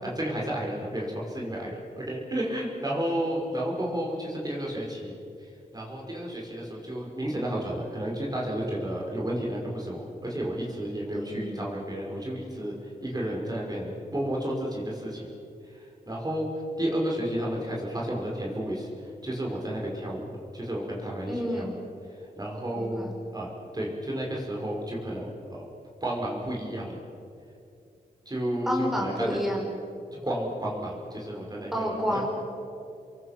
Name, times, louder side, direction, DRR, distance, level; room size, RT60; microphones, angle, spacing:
voice 1, 0.0-15.3 15.6-16.5 16.8-20.3 20.5-21.7 22.4-25.6 26.0-27.0 28.3-29.4 30.2-32.0, right 1 dB, 25° right, -3 dB, 5.8 m, -32 dB
voice 2, 11.1-11.6 21.3-21.8 22.7-23.1 28.7-29.7 31.7-32.3, equal, ahead, -2 dB, 5.7 m, -30 dB
30.0 x 23.0 x 6.9 m, 2.6 s
wide cardioid pair, 85°, 16 cm